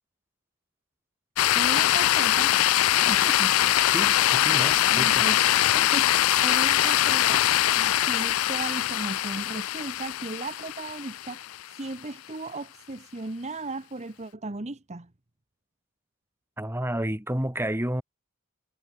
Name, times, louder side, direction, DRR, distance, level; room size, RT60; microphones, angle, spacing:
sound 1, 1.4-11.7, left 13 dB, 80° left, 0.4 m, -22 dB
voice 1, 1.5-2.6 3.1-3.5 4.9-5.4 5.7-11.5 11.8-15.1, right 2 dB, 35° right, 1.1 m, -36 dB
voice 2, 3.9-5.3 16.6-18.0, right 1 dB, 10° right, 2.7 m, -30 dB
head